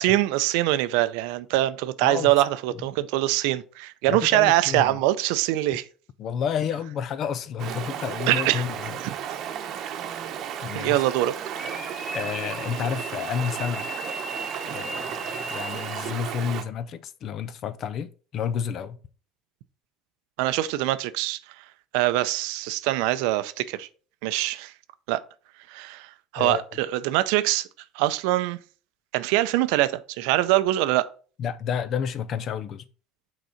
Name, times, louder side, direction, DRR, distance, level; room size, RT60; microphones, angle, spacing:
voice 1, 0.0-5.8 8.3-8.6 9.3-9.4 10.7-11.3 20.4-21.4 21.9-23.9 24.2-24.7 25.1-25.2 25.7-27.7 27.9-28.6 29.1-31.1, right 15 dB, 80° right, 0.5 m, -23 dB
voice 2, 2.0-2.4 2.7-2.9 4.1-5.0 6.2-9.0 10.6-11.0 12.1-13.9 14.7-19.0 26.4-26.8 31.4-32.9, left 7 dB, 50° left, 0.6 m, -30 dB
Stream, 7.6-16.6, right 9 dB, 55° right, 0.9 m, -34 dB
sound 1, 11.5-16.2, equal, ahead, 1.9 m, -38 dB
6.4 x 4.0 x 5.0 m
supercardioid pair, 110°, 0 cm